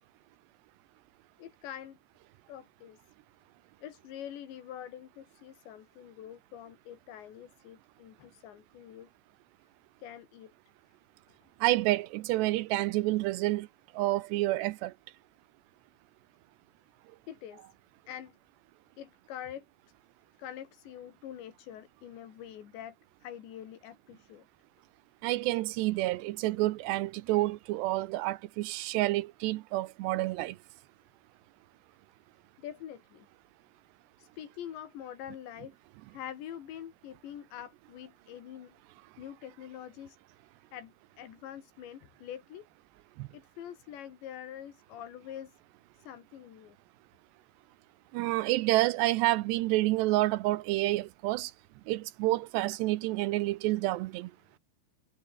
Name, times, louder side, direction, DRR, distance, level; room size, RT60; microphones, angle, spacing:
voice 1, 1.4-2.0 2.5-3.0 3.8-9.1 10.0-10.5 11.3-11.4 17.3-17.6 18.1-18.4 19.0-19.6 20.4-24.5 32.6-33.3 34.2-35.8 36.1-38.7 39.2-40.2 40.7-42.7 43.3-45.6 45.9-46.8, left 10 dB, 75° left, 4.7 m, -45 dB
voice 2, 11.6-13.7 13.9-14.9 25.2-30.6 43.2-43.3 48.1-51.5 51.9-54.3, right 18 dB, 85° right, 2.7 m, -29 dB
omnidirectional pair, 5.2 m